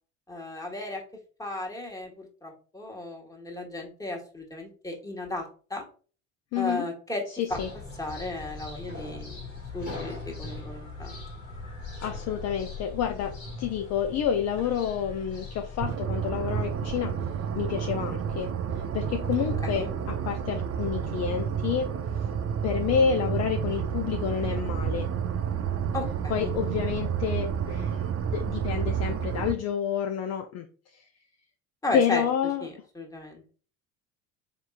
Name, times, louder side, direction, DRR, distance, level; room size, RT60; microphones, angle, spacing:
voice 1, 0.3-1.0 1.4-5.4 5.7-5.8 6.5-7.2 7.5-7.6 8.0-9.4 9.7-11.2 19.4-19.9 25.9-26.5 31.8-32.2 32.6-33.4, left 2 dB, 10° left, 1 dB, 1.4 m, -35 dB
voice 2, 6.5-6.9 7.4-7.7 12.0-17.1 17.6-18.5 18.8-21.9 22.6-25.1 26.3-30.7 30.9-31.0 31.9-32.7, left 8 dB, 40° left, 7 dB, 0.5 m, -29 dB
sound 1, 7.5-16.0, left 3 dB, 80° left, 1.7 m, -40 dB
sound 2, 15.8-29.5, right 8 dB, 35° right, 0.6 m, -30 dB
5.0 x 3.6 x 2.4 m, 0.39 s
figure-of-eight pair, 60°, 39 cm